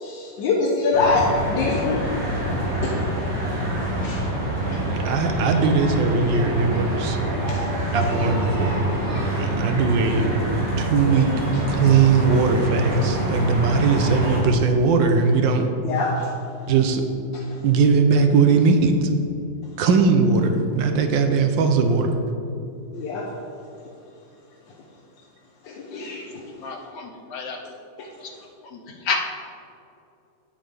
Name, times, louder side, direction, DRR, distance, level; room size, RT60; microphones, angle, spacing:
voice 1, 0.0-2.0 2.8-3.0 4.0-4.2 4.7-4.8 7.5-7.6 15.8-16.3 22.9-23.3 25.6-26.4, left 3 dB, 85° left, -1 dB, 1.6 m, -24 dB
sound 1, 0.9-14.4, right 1 dB, 55° right, 2.6 m, -25 dB
voice 2, 5.0-7.2 7.9-8.7 9.3-10.3 10.8-11.3 11.7-15.7 16.7-17.0 17.6-19.1 19.8-22.1, right 4 dB, 85° right, 6 dB, 1.4 m, -19 dB
Bowed string instrument, 6.7-10.7, right 2 dB, ahead, 1.9 m, -34 dB
voice 3, 26.6-27.6 28.2-28.3 28.6-29.2, left 5 dB, 60° left, 1 dB, 1.4 m, -30 dB
9.3 x 9.1 x 3.4 m, 2.7 s
omnidirectional pair, 2.0 m